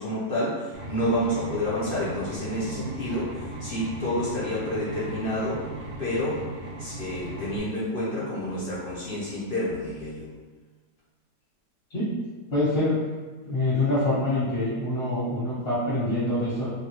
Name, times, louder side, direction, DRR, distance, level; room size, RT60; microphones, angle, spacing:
voice 1, 0.0-5.6 6.0-6.5 6.8-10.3, left 1 dB, 70° left, -8 dB, 0.5 m, -29 dB
sound 1, 0.7-7.6, right 2 dB, 85° right, 0.5 m, -38 dB
voice 2, 12.5-13.0 13.4-16.7, left 1 dB, 40° left, -12 dB, 1.1 m, -25 dB
2.8 x 2.6 x 2.8 m, 1.4 s
omnidirectional pair, 1.8 m